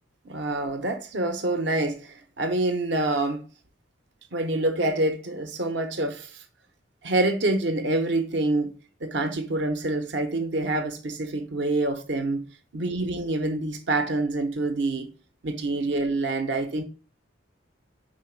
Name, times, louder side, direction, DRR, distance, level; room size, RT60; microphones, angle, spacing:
voice 1, 0.2-3.4 4.3-6.3 7.0-8.7 9.0-12.5 12.7-15.1 15.4-16.8, right 2 dB, 60° right, 0.9 m, -26 dB
4.8 x 4.7 x 4.5 m
head